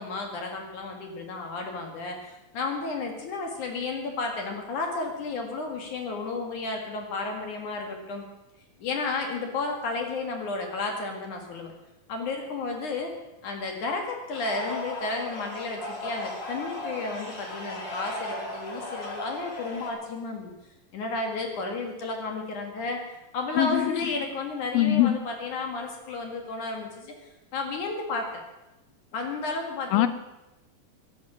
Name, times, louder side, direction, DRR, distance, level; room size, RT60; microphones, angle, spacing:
voice 1, 0.0-8.2 8.8-11.7 12.1-13.1 13.4-20.5 20.9-27.1 27.5-28.2 29.1-30.1, left 3 dB, 60° left, 2 dB, 3.1 m, -32 dB
sound 1, 14.3-19.9, left 1 dB, 35° left, 2.5 m, -36 dB
voice 2, 23.6-23.9 24.7-25.2 29.9-30.1, left 13 dB, 85° left, 12 dB, 2.7 m, -21 dB
17.0 x 10.5 x 6.0 m, 0.98 s
omnidirectional pair, 4.1 m